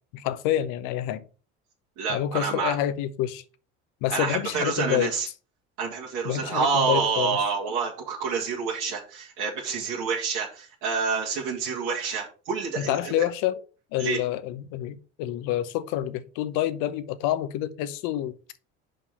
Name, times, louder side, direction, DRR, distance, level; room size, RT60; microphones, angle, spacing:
voice 1, 0.1-1.2 2.1-3.4 4.0-5.1 6.2-7.4 12.8-13.6 13.9-18.3, left 12 dB, 75° left, 0.9 m, -28 dB
voice 2, 2.0-2.8 4.1-5.3 5.8-13.2 14.0-14.2, right 5 dB, 80° right, 2.0 m, -28 dB
5.4 x 5.4 x 5.4 m
supercardioid pair, 90°, 31 cm